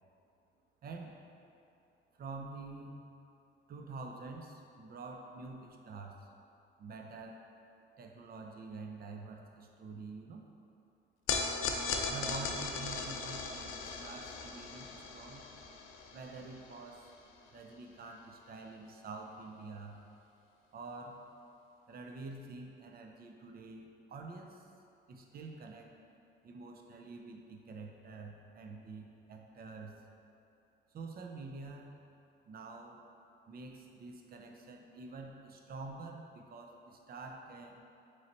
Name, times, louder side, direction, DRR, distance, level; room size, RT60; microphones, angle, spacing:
voice 1, 0.8-1.1 2.1-3.0 3.7-6.3 6.8-7.4 8.0-10.4 12.1-15.5 16.1-17.1 17.5-20.0 20.7-21.2 21.9-24.7 25.1-25.9 26.4-30.0 30.9-32.0 32.5-33.0 33.5-37.8, right 3 dB, 50° right, 2 dB, 0.5 m, -47 dB
sound 1, 11.3-17.7, left 4 dB, 85° left, 0.5 m, -38 dB
3.8 x 3.1 x 4.2 m, 2.7 s
cardioid pair, 90°, 20 cm